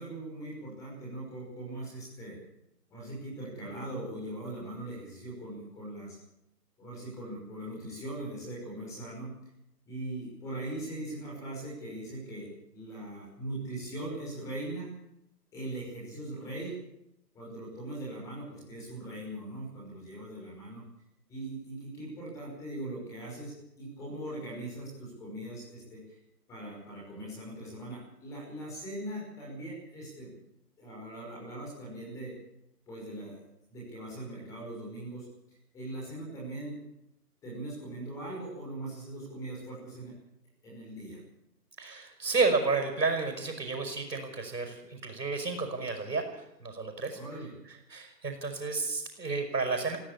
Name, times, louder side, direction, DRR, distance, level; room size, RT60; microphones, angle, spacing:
voice 1, 0.0-2.4 2.9-6.2 6.8-9.3 9.9-12.5 12.7-14.9 15.5-16.7 17.3-20.8 21.3-26.2 26.5-30.3 30.8-32.3 32.9-35.3 35.7-36.8 37.4-40.1 40.6-41.2 47.1-47.5, right 1 dB, 5° left, -4 dB, 5.7 m, -40 dB
voice 2, 41.8-47.2 47.9-50.0, right 4 dB, 80° right, 4 dB, 6.2 m, -31 dB
19.5 x 16.0 x 8.7 m, 0.82 s
hypercardioid pair, 165°, 49 cm